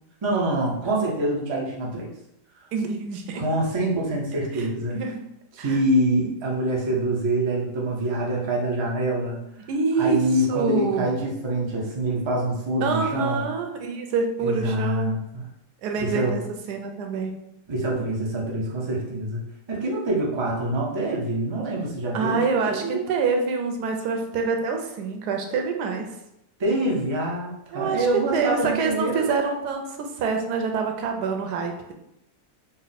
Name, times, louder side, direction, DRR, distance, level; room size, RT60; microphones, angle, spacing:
voice 1, 0.2-2.1 3.3-5.0 5.5-9.4 10.0-13.5 14.4-15.4 16.0-16.4 17.7-19.4 19.7-23.2 26.6-29.3, right 1 dB, 35° right, -3 dB, 0.4 m, -25 dB
voice 2, 2.7-3.4 4.5-5.2 5.6-5.8 9.7-11.1 12.8-15.1 15.8-17.4 22.1-26.1 27.7-28.1 28.3-31.9, right 4 dB, 90° right, 3 dB, 1.2 m, -26 dB
4.0 x 2.0 x 4.0 m, 0.82 s
omnidirectional pair, 1.7 m